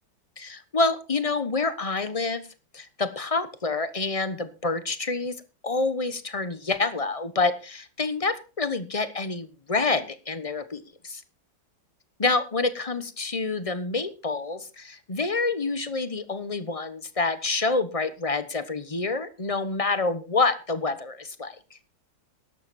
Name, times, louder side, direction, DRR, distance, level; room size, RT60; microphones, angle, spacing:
voice 1, 0.4-2.4 2.7-5.3 5.6-11.2 12.2-21.6, left 3 dB, 25° left, 12 dB, 0.8 m, -27 dB
13.0 x 11.5 x 4.2 m, 0.32 s
omnidirectional pair, 2.0 m